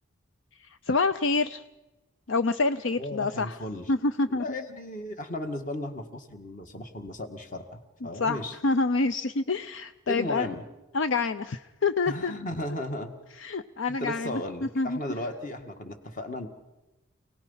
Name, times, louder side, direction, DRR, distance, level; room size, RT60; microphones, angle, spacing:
voice 1, 0.9-1.6 2.3-3.6 3.9-4.4 8.2-10.5 10.9-12.3 13.4-14.4 14.8-15.0, left 3 dB, 65° left, 11 dB, 0.6 m, -27 dB
voice 2, 3.0-3.9 4.3-8.6 10.1-10.6 12.1-13.1 14.0-16.5, left 1 dB, 40° left, 6 dB, 1.9 m, -35 dB
28.5 x 18.5 x 5.7 m, 1.1 s
head